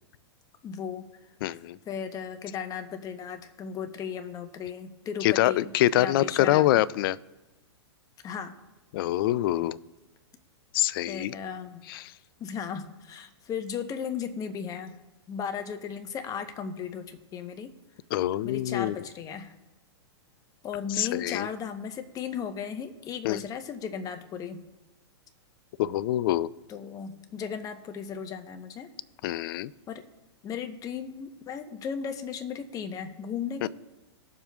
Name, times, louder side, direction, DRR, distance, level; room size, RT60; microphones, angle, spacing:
voice 1, 0.6-1.1 1.9-6.8 8.2-8.6 11.1-11.8 12.4-15.0 15.3-17.7 18.4-19.5 20.6-24.6 26.7-28.9 29.9-30.0 30.4-33.7, left 7 dB, 25° left, 8 dB, 0.9 m, -36 dB
voice 2, 1.4-1.8 5.2-7.2 8.9-9.8 10.7-11.3 11.9-12.1 18.1-19.0 20.9-21.5 23.2-23.4 25.8-26.5 29.2-29.7 33.6-33.7, left 14 dB, 55° left, 18 dB, 0.4 m, -25 dB
19.0 x 7.2 x 2.3 m, 1.1 s
hypercardioid pair, 125°, 14 cm